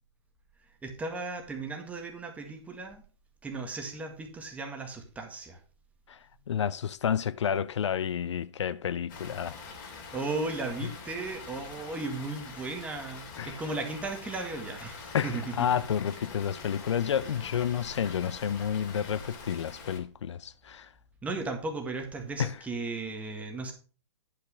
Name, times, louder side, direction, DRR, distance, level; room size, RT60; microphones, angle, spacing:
voice 1, 0.8-3.0 3.4-5.6 10.1-15.7 21.2-23.7, right 3 dB, 10° right, 1.8 m, -36 dB
voice 2, 6.5-9.6 13.4-13.6 15.1-20.9 22.4-22.6, left 8 dB, 85° left, 0.5 m, -30 dB
Water, 9.1-20.0, left 4 dB, 40° left, 2.8 m, -44 dB
10.5 x 5.8 x 4.9 m
hypercardioid pair, 140°, 15 cm